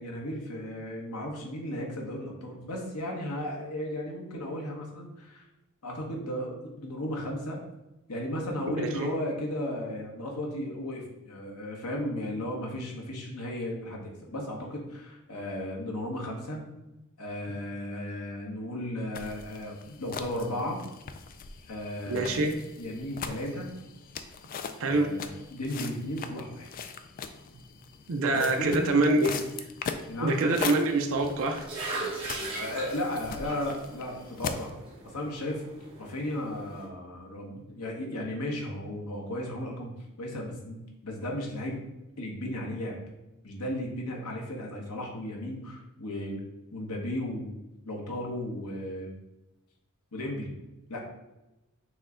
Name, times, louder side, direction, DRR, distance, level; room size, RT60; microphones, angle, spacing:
voice 1, 0.0-5.4 5.8-7.6 8.1-16.6 17.2-20.8 21.7-22.3 22.8-23.7 24.8-26.7 28.3-28.8 30.1-30.4 32.5-34.7 35.1-35.6 36.0-41.8 42.2-43.0 43.4-46.4 46.7-47.5 47.9-49.2 50.1-50.5 50.9-51.1, left 1 dB, 90° left, 0 dB, 1.1 m, -35 dB
voice 2, 8.8-9.1 22.1-22.5 24.8-25.1 28.1-29.4 30.2-31.7, right 2 dB, 65° right, 4 dB, 0.5 m, -25 dB
sound 1, 19.1-34.7, left 5 dB, 40° left, 0.3 m, -41 dB
sound 2, 31.2-36.9, right 2 dB, 25° right, 1.5 m, -40 dB
6.2 x 2.2 x 3.7 m, 0.98 s
head